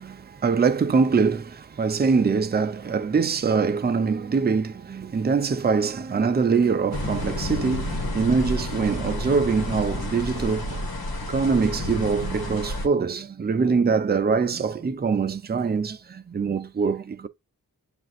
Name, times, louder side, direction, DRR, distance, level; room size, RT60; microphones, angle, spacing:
voice 1, 0.0-10.9 11.3-17.3, right 5 dB, 25° right, 0.5 m, -23 dB
sound 1, 6.9-12.9, left 1 dB, 80° left, 1.3 m, -30 dB
7.6 x 2.6 x 2.4 m
cardioid pair, 60°, 37 cm